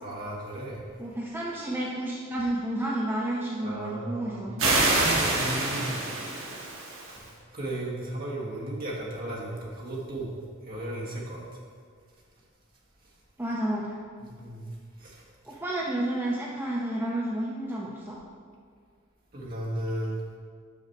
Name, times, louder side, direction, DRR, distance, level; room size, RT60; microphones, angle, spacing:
voice 1, 0.0-0.8 3.6-4.5 5.0-6.0 7.1-10.4 10.6-11.4 14.2-14.7 15.0-15.2 19.3-20.2, right 1 dB, 45° right, -5 dB, 1.5 m, -35 dB
voice 2, 1.0-4.8 13.4-13.9 15.5-18.2, right 1 dB, 10° right, -4 dB, 0.6 m, -31 dB
sound 1, 4.6-7.2, right 2 dB, 65° right, 1.4 m, -26 dB
6.0 x 5.8 x 4.6 m, 2.1 s
head